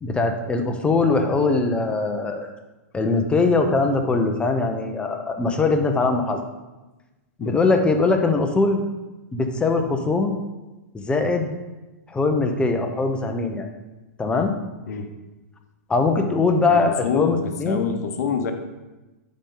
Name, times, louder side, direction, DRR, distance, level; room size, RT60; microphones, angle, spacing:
voice 1, 0.0-2.5 2.9-6.4 7.4-8.8 9.3-10.4 10.9-11.5 12.1-13.7 14.2-14.5 15.9-17.8, left 3 dB, 10° left, 4 dB, 0.7 m, -21 dB
voice 2, 16.7-17.3 17.7-18.5, left 6 dB, 75° left, 6 dB, 0.8 m, -26 dB
8.9 x 4.4 x 3.8 m, 1.1 s
hypercardioid pair, 130°, 9 cm